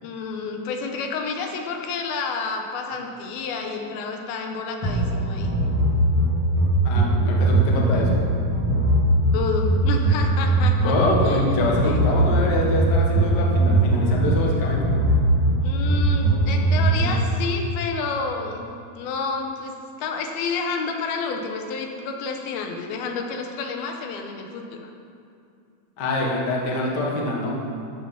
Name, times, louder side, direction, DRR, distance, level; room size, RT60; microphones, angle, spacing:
voice 1, 0.0-5.5 9.3-10.9 11.3-12.1 15.6-18.7 19.0-19.7 20.0-24.9, left 4 dB, 80° left, 3 dB, 2.7 m, -30 dB
sound 1, 4.8-17.3, right 1 dB, 30° left, 2.6 m, -20 dB
voice 2, 6.8-8.2 10.8-14.8 26.0-27.5, left 1 dB, 55° left, -2 dB, 1.1 m, -25 dB
14.0 x 6.4 x 5.8 m, 2.4 s
omnidirectional pair, 4.4 m